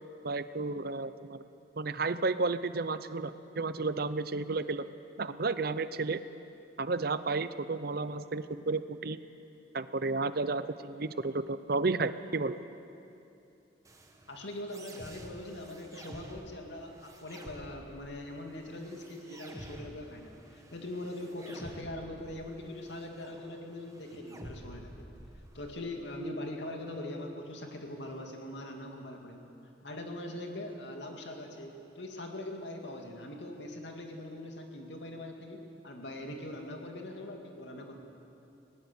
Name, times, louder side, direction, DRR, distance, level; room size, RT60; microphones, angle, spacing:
voice 1, 0.2-1.4 1.8-4.9 5.2-6.2 6.8-9.2 9.7-12.6, right 3 dB, 55° right, 13 dB, 0.7 m, -32 dB
sound 1, 13.8-25.8, right 1 dB, 20° right, 1.5 m, -50 dB
voice 2, 14.3-25.0 25.5-29.4 29.8-35.6 35.8-38.0, left 1 dB, 75° left, 2 dB, 2.4 m, -42 dB
19.0 x 19.0 x 8.2 m, 2.7 s
head